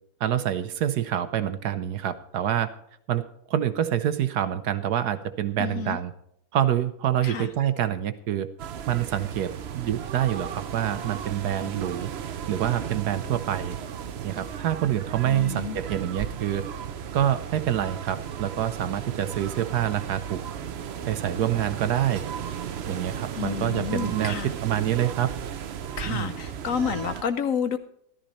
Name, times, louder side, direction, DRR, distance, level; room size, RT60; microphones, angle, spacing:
voice 1, 0.2-2.7 3.1-6.1 6.5-8.5 8.9-12.1 12.5-13.8 14.2-16.7 17.1-20.4 21.1-22.2 22.9-25.3 26.0-26.4, right 11 dB, 65° right, 11 dB, 1.2 m, -26 dB
voice 2, 5.6-6.0 7.2-7.5 15.3-15.8 23.4-24.5 26.0-27.8, left 7 dB, 70° left, 10 dB, 0.8 m, -30 dB
sound 1, 8.6-27.2, right 8 dB, 80° right, 0.5 m, -35 dB
13.5 x 13.5 x 4.2 m, 0.70 s
omnidirectional pair, 2.1 m